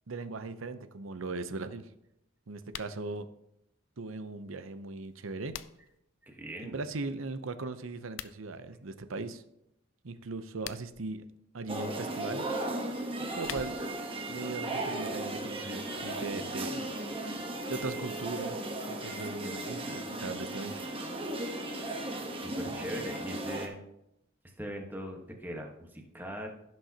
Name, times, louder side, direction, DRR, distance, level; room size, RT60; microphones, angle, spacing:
voice 1, 0.1-1.9 2.5-3.3 4.0-5.6 6.6-9.4 10.0-11.2 11.5-12.4 13.4-13.8 14.3-16.9 17.7-20.8, right 3 dB, 80° right, 11 dB, 0.7 m, -39 dB
sound 1, 2.6-3.0 5.0-6.0 8.0-8.4 10.4-11.1 13.1-14.0, left 10 dB, 70° left, 0.4 m, -45 dB
voice 2, 6.2-6.8 22.4-23.8 24.4-26.5, equal, 10° right, 2 dB, 1.3 m, -40 dB
sound 2, 11.7-23.7, right 1 dB, 25° right, 1.1 m, -36 dB
16.0 x 6.3 x 2.9 m, 0.82 s
head